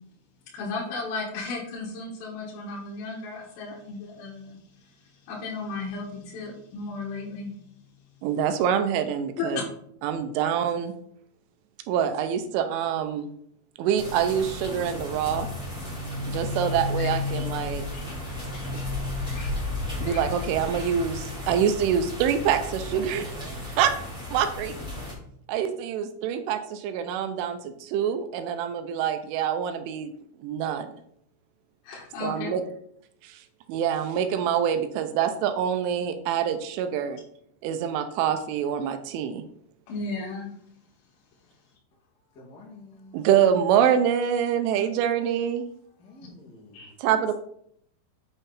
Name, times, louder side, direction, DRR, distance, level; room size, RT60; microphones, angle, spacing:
voice 1, 0.5-7.5 9.4-9.6 31.8-32.5 39.9-40.5 46.7-46.9, left 3 dB, 80° left, -4 dB, 4.3 m, -34 dB
voice 2, 8.2-9.6 10.0-11.0 11.9-13.3 13.8-15.5 16.3-17.9 20.0-24.0 24.3-24.7 25.5-30.1 30.4-31.0 32.2-32.6 33.2-37.2 37.6-39.4 43.1-45.7 47.0-47.3, right 8 dB, 80° right, 9 dB, 3.0 m, -25 dB
sound 1, 14.0-25.1, left 2 dB, ahead, 2.5 m, -33 dB
sound 2, 16.2-21.6, left 3 dB, 50° left, 3.0 m, -49 dB
voice 3, 42.3-43.3 46.0-46.8, left 2 dB, 30° left, -4 dB, 1.9 m, -49 dB
9.0 x 5.6 x 4.1 m, 0.69 s
omnidirectional pair, 5.7 m